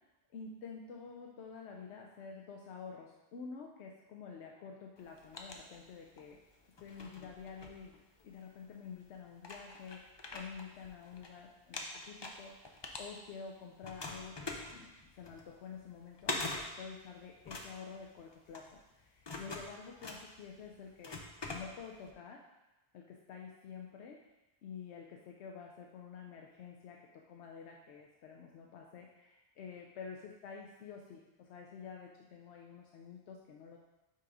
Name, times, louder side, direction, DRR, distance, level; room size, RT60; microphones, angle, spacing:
voice 1, 0.3-6.4 6.8-7.9 8.2-12.6 13.0-22.4 22.9-24.2 24.6-33.8, left 6 dB, 90° left, 0 dB, 0.9 m, -49 dB
sound 1, 5.0-6.3 6.7-8.4 9.0-9.1 9.4-11.3 11.6-13.5 13.8-22.1, left 2 dB, 35° left, 0.5 m, -44 dB
5.5 x 3.9 x 4.8 m, 1.0 s
omnidirectional pair, 1.1 m